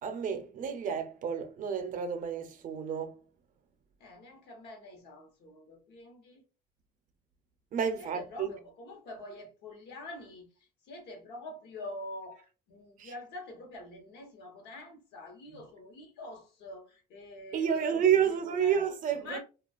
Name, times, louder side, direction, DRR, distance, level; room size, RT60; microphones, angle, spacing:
voice 1, 0.0-3.2 7.7-8.5 13.0-13.1 17.5-19.4, right 8 dB, 50° right, 0.5 m, -30 dB
voice 2, 4.0-6.4 8.0-19.4, left 1 dB, 80° left, 0.9 m, -46 dB
2.4 x 2.3 x 2.3 m
cardioid pair, 110°, 17 cm